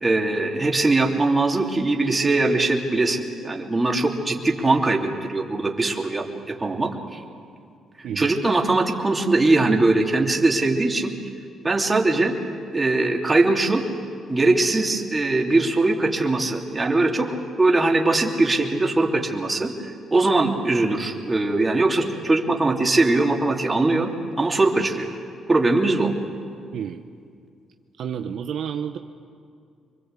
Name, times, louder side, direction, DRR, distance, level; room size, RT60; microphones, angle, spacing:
voice 1, 0.0-7.2 8.2-11.1 11.6-12.3 12.7-13.8 14.3-17.3 17.6-24.1 24.4-25.1 25.5-26.1, right 2 dB, 20° right, 0 dB, 3.1 m, -21 dB
voice 2, 26.7-27.0 28.0-29.0, right 8 dB, 70° right, 6 dB, 0.9 m, -30 dB
26.0 x 23.5 x 8.3 m, 2.3 s
cardioid pair, 90°, 0 cm